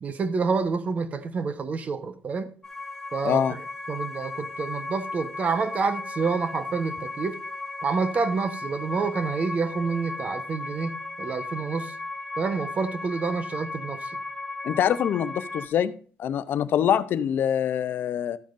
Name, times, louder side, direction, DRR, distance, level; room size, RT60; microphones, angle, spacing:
voice 1, 0.0-2.5 3.1-7.4 7.8-11.9 12.4-14.2, right 4 dB, 35° right, 1.0 m, -28 dB
sound 1, 2.6-15.7, left 3 dB, 10° left, 3.4 m, -36 dB
voice 2, 3.2-3.6 14.6-15.9 16.2-18.4, left 9 dB, 55° left, 0.6 m, -24 dB
13.5 x 9.1 x 2.6 m
cardioid pair, 120°, 4 cm